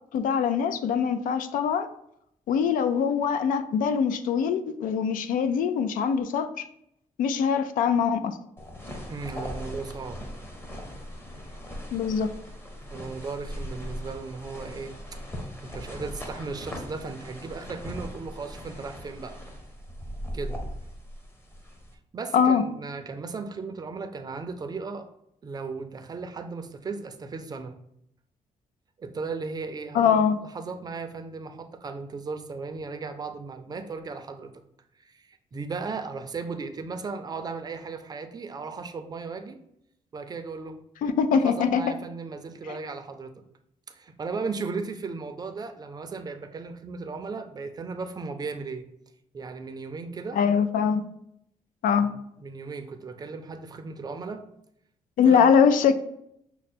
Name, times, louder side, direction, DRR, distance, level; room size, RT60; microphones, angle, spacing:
voice 1, 0.1-1.9 2.5-6.7 7.2-8.4 11.9-12.3 22.3-22.6 29.9-30.4 41.0-41.8 50.3-51.1 51.8-52.1 55.2-55.9, left 7 dB, 90° left, 10 dB, 0.4 m, -23 dB
sound 1, 8.6-21.9, equal, 15° left, 0.7 m, -39 dB
voice 2, 9.1-10.2 12.9-15.2 15.6-19.4 20.3-20.6 22.1-25.1 25.4-27.7 29.0-34.5 35.0-39.6 40.1-40.8 41.3-43.3 43.9-48.8 49.3-50.4 52.0-54.4 55.2-55.5, right 4 dB, 30° right, 7 dB, 0.4 m, -36 dB
6.1 x 2.1 x 4.2 m, 0.76 s
cardioid pair, 150°, 14 cm